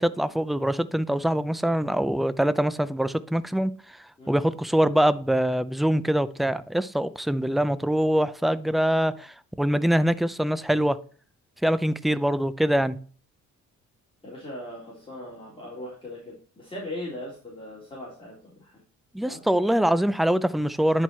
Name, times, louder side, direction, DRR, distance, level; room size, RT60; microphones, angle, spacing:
voice 1, 0.0-3.7 4.3-11.0 11.6-13.0 19.1-21.0, right 1 dB, ahead, 0.5 m, -24 dB
voice 2, 14.2-18.8 19.3-19.4, left 1 dB, 15° left, 3.4 m, -39 dB
10.0 x 4.6 x 4.3 m
cardioid pair, 90°, 30 cm